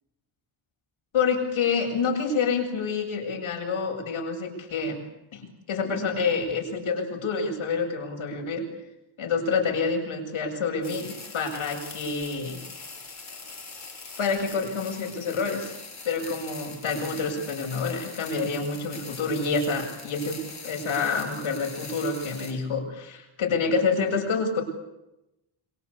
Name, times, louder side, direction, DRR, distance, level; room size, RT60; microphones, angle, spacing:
voice 1, 1.1-5.0 5.3-8.6 9.2-12.6 14.2-15.7 16.0-20.4 20.6-24.6, left 4 dB, 75° left, 3 dB, 7.8 m, -27 dB
sound 1, 10.8-22.5, left 4 dB, 35° left, 6.1 m, -42 dB
27.5 x 24.0 x 8.5 m, 0.91 s
wide cardioid pair, 120°, 49 cm